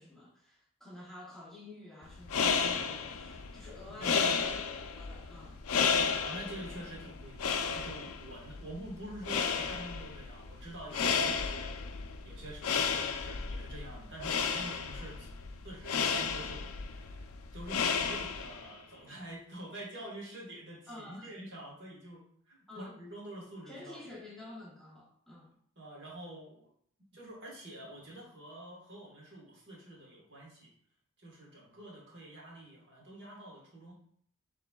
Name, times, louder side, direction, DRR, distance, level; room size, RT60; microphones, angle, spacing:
voice 1, 0.0-4.6 5.0-6.3 12.6-12.9 20.9-21.3 22.7-23.0 23.7-25.5, left 2 dB, ahead, -6 dB, 0.8 m, -50 dB
sound 1, 2.1-18.7, left 6 dB, 70° left, 0.4 m, -33 dB
voice 2, 3.9-4.3 5.7-15.3 15.6-17.3 17.5-24.1 25.8-26.7 27.1-30.7 31.2-33.9, right 1 dB, 50° right, -2 dB, 1.4 m, -47 dB
6.6 x 3.3 x 2.3 m, 0.62 s
head